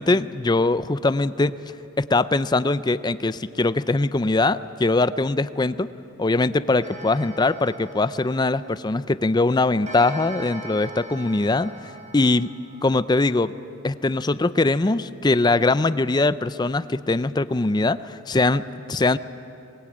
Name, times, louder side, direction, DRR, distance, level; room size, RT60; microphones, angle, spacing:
voice 1, 0.0-1.6 2.0-5.9 6.2-11.7 12.1-12.5 12.8-13.5 13.8-19.2, left 2 dB, 20° left, 15 dB, 0.5 m, -22 dB
Clock, 6.8-9.1 9.9-13.2, right 1 dB, 35° right, 5.6 m, -40 dB
23.0 x 22.0 x 8.7 m, 2.8 s
head